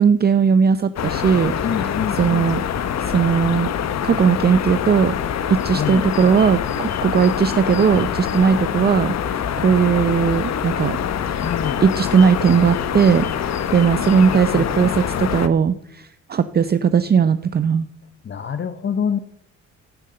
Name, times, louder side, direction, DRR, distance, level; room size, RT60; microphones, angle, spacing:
voice 1, 0.0-2.6 3.0-3.7 4.0-5.2 5.5-11.0 11.8-17.9, right 6 dB, 35° right, 12 dB, 0.6 m, -18 dB
sound 1, 1.0-15.5, left 8 dB, 60° left, 1.1 m, -25 dB
voice 2, 1.6-2.5 5.7-6.1 11.4-11.8 14.1-15.3 18.2-19.2, left 7 dB, 40° left, 11 dB, 0.8 m, -26 dB
16.0 x 7.2 x 6.8 m, 0.77 s
cardioid pair, 90°, 30 cm